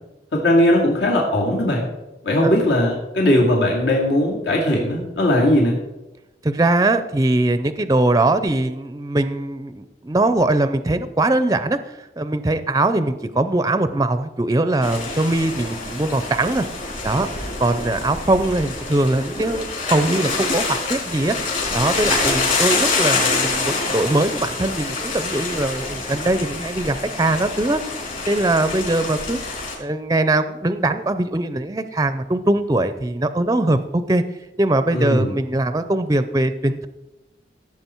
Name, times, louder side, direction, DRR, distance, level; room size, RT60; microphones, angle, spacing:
voice 1, 0.3-1.9 2.2-5.8 34.9-35.3, left 1 dB, 80° left, -2 dB, 2.4 m, -18 dB
voice 2, 6.4-16.6 17.0-17.3 17.6-21.4 21.7-27.8 28.3-29.4 29.8-34.2 34.6-36.9, right 2 dB, 20° right, 11 dB, 0.5 m, -21 dB
sound 1, 14.8-29.7, left 3 dB, 45° left, 4.0 m, -26 dB
16.5 x 7.6 x 4.5 m, 1.0 s
head